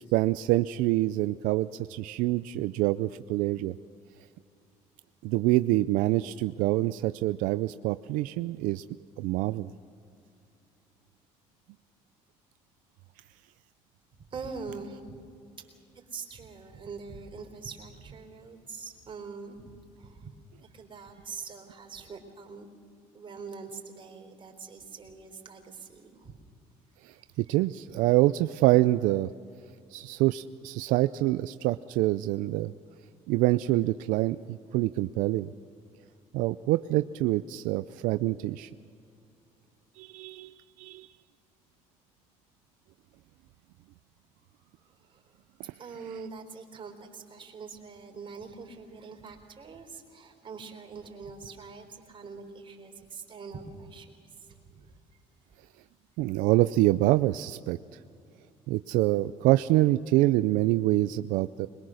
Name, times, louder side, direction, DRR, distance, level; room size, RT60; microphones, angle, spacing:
voice 1, 0.0-3.8 5.2-8.8 9.2-9.7 27.0-29.3 29.9-32.7 33.3-35.5 36.3-38.7 40.0-41.1 45.6-45.7 56.2-57.8 58.7-61.7, right 17 dB, 80° right, 13 dB, 0.4 m, -26 dB
voice 2, 14.3-15.2 15.9-20.4 20.6-22.7 23.1-26.4 27.1-27.3 45.1-45.2 45.8-54.1 54.4-54.6 54.8-54.9, right 5 dB, 40° right, 3 dB, 3.9 m, -43 dB
22.5 x 21.5 x 6.4 m, 2.5 s
supercardioid pair, 90°, 13 cm